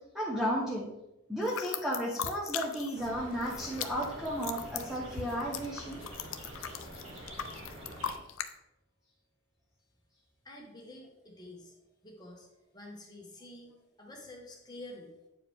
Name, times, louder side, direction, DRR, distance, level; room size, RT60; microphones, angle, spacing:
voice 1, 0.1-0.9 1.3-6.1, equal, ahead, -5 dB, 0.9 m, -33 dB
sound 1, 1.4-3.1 3.3-8.5, left 8 dB, 80° left, 0.5 m, -39 dB
sound 2, 2.9-8.1, right 1 dB, 85° right, 2.0 m, -46 dB
voice 2, 10.4-11.7 12.0-12.5 12.7-15.1, left 1 dB, 20° left, -1 dB, 1.3 m, -48 dB
8.4 x 4.7 x 3.5 m, 0.90 s
head